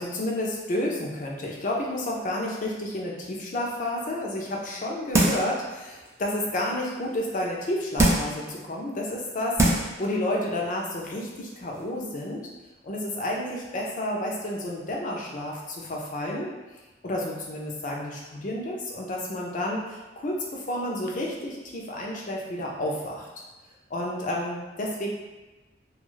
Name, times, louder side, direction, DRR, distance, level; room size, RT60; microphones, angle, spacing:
voice 1, 0.0-12.5 12.8-16.5 17.0-23.3 23.9-25.1, left 1 dB, 45° left, -2 dB, 0.5 m, -31 dB
sound 1, 5.1-5.6 6.1-6.2 8.0-8.4 9.1-9.2 9.6-10.0 10.4-10.5, right 1 dB, 15° right, 0.4 m, -22 dB
2.4 x 2.4 x 3.1 m, 1.2 s
head